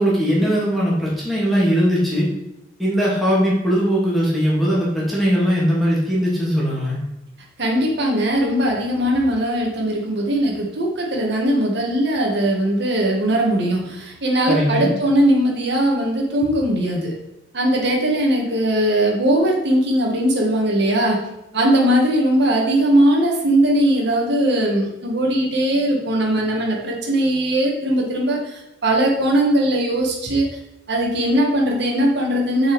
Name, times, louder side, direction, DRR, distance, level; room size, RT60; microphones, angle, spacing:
voice 1, 0.0-2.3 2.8-7.0 14.5-14.9, equal, ahead, -6 dB, 2.2 m, -19 dB
voice 2, 7.6-17.2 17.5-21.3 21.5-30.5 30.9-32.7, right 1 dB, 65° right, -1 dB, 1.5 m, -19 dB
6.6 x 4.6 x 4.6 m, 0.90 s
head